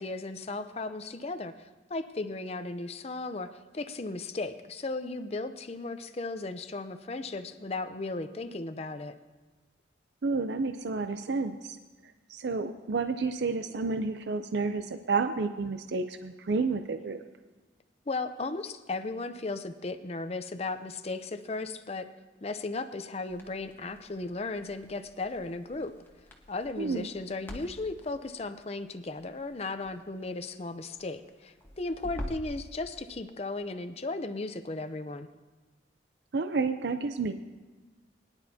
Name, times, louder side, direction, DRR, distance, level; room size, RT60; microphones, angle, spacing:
voice 1, 0.0-3.5 3.7-9.1 18.1-22.1 22.4-25.9 26.5-35.3, left 3 dB, 35° left, 9 dB, 0.5 m, -36 dB
voice 2, 10.2-11.8 12.3-17.2 26.8-27.1 36.3-37.3, right 4 dB, 65° right, 8 dB, 0.5 m, -30 dB
Crackle, 23.3-32.6, left 1 dB, 10° left, 1.2 m, -47 dB
22.0 x 10.5 x 2.8 m, 1.3 s
head